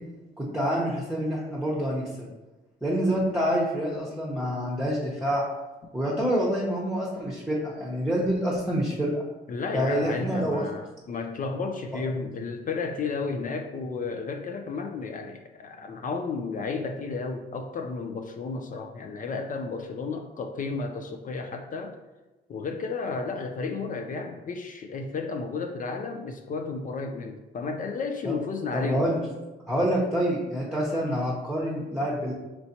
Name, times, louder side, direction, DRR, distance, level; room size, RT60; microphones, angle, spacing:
voice 1, 0.4-2.3 2.8-5.4 5.9-9.2 9.7-10.7 28.2-28.4 28.7-29.2 29.7-32.3, equal, 5° right, -5 dB, 0.9 m, -27 dB
voice 2, 9.5-22.0 22.5-29.1, left 4 dB, 45° left, 5 dB, 0.4 m, -32 dB
4.1 x 3.1 x 2.8 m, 1.1 s
cardioid pair, 90°, 20 cm